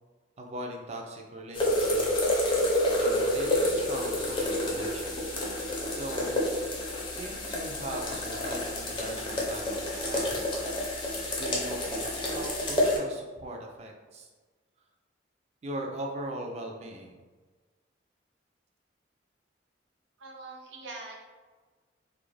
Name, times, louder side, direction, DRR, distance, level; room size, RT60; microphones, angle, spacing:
voice 1, 0.4-5.7 5.9-6.7 7.0-10.4 11.3-14.3 15.6-17.2, right 1 dB, 35° right, 1 dB, 0.3 m, -40 dB
sound 1, 1.5-13.0, left 1 dB, 25° left, 0.5 m, -29 dB
voice 2, 20.2-21.2, right 3 dB, 80° right, -1 dB, 0.6 m, -43 dB
2.4 x 2.1 x 3.1 m, 1.4 s
head